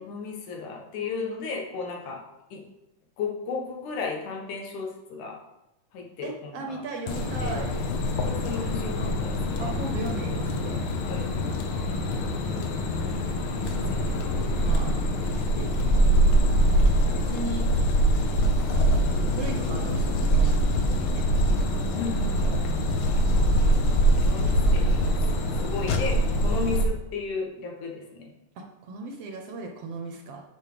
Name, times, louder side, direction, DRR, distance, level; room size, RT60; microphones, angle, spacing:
voice 1, 0.0-2.2 2.5-2.6 3.2-5.4 5.9-6.8 7.4-7.6 8.2-9.7 11.0-11.3 13.6-14.2 22.0-22.8 23.9-25.2 25.6-28.3, left 4 dB, 90° left, 0 dB, 2.9 m, -35 dB
voice 2, 6.2-7.7 9.6-10.8 13.5-15.0 15.2-16.1 17.1-17.7 18.7-21.7 22.7-23.2 28.6-30.4, right 3 dB, 65° right, 2 dB, 1.7 m, -38 dB
sound 1, 7.1-26.8, equal, 65° left, 1.4 m, -24 dB
8.6 x 6.2 x 5.1 m, 0.95 s
omnidirectional pair, 3.4 m